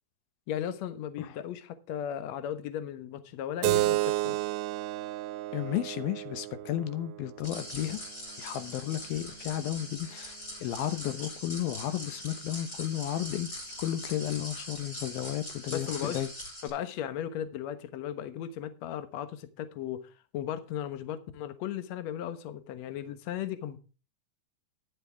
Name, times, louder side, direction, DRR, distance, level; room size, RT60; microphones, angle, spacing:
voice 1, 0.5-4.4 15.7-16.2 16.6-23.8, left 10 dB, 60° left, 2.0 m, -36 dB
Keyboard (musical), 3.6-8.7, right 17 dB, 80° right, 2.1 m, -32 dB
voice 2, 5.5-8.0 8.4-13.5 13.8-16.3, left 12 dB, 85° left, 2.8 m, -33 dB
sound 1, 7.4-16.7, equal, 25° left, 5.3 m, -42 dB
11.0 x 11.0 x 3.5 m
omnidirectional pair, 4.1 m